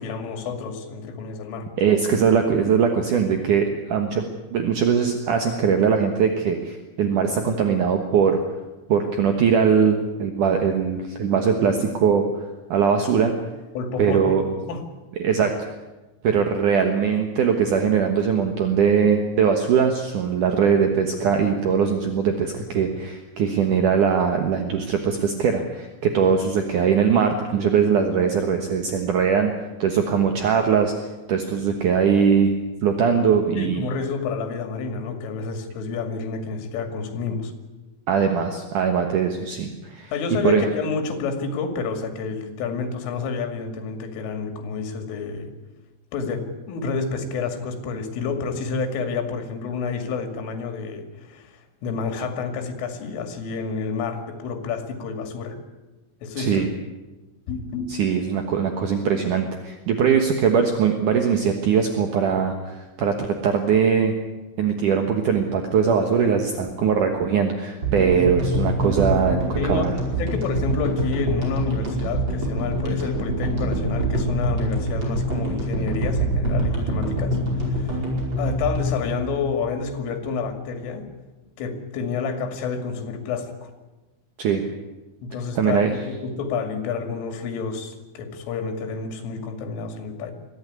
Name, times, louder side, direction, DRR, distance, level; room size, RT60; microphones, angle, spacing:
voice 1, 0.0-1.7 13.8-14.3 14.7-14.8 22.8-22.9 33.6-37.5 40.1-45.5 46.1-55.6 56.2-56.7 57.5-58.0 69.6-78.1 78.4-81.1 81.6-83.7 85.2-90.3, left 5 dB, 75° left, 6 dB, 4.8 m, -29 dB
voice 2, 1.8-4.2 4.5-8.4 8.9-12.3 12.7-13.3 14.0-14.4 15.2-15.5 16.2-29.5 29.8-30.9 31.3-32.6 32.8-33.9 38.1-40.1 40.4-40.7 56.4-56.7 57.9-64.1 64.6-69.9 84.4-84.6 85.6-85.9, right 7 dB, 70° right, 4 dB, 1.9 m, -21 dB
sound 1, 67.8-80.2, right 1 dB, 25° right, 5.3 m, -25 dB
22.0 x 15.0 x 9.6 m, 1.1 s
omnidirectional pair, 5.8 m